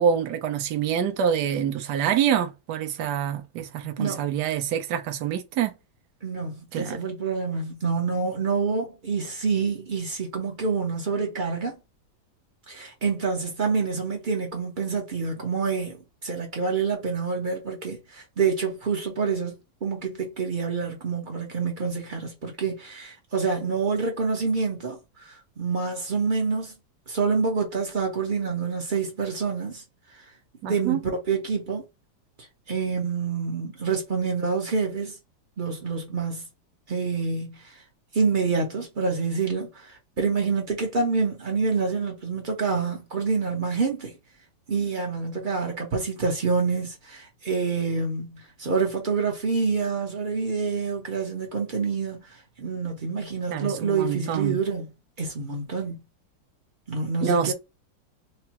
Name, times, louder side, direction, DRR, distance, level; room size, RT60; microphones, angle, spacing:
voice 1, 0.0-5.7 6.7-7.0 30.6-31.0 53.5-54.6 57.2-57.5, right 8 dB, 70° right, 1.1 m, -26 dB
voice 2, 6.2-11.8 12.7-16.0 16.2-19.6 19.8-26.7 27.1-29.8 30.1-30.2 30.6-31.8 32.4-35.2 35.6-36.4 36.9-37.8 38.1-44.1 44.7-54.9 55.2-56.0 56.9-57.5, right 5 dB, 50° right, 0.6 m, -27 dB
4.6 x 2.0 x 2.8 m
omnidirectional pair, 2.1 m